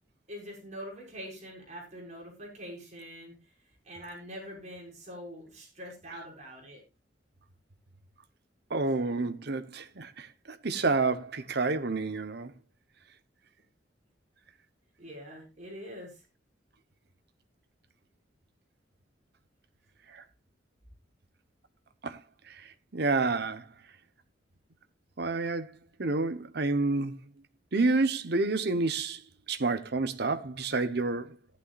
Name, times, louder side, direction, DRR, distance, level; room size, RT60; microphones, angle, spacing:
voice 1, 0.3-3.3 3.8-6.8 15.0-16.1, equal, 40° right, 5.8 m, -44 dB
voice 2, 8.7-12.5 20.1-20.2 22.0-22.2 22.5-23.7 25.2-25.7 26.0-27.2 27.7-31.4, right 3 dB, 65° right, 1.1 m, -29 dB
15.0 x 11.5 x 2.5 m
head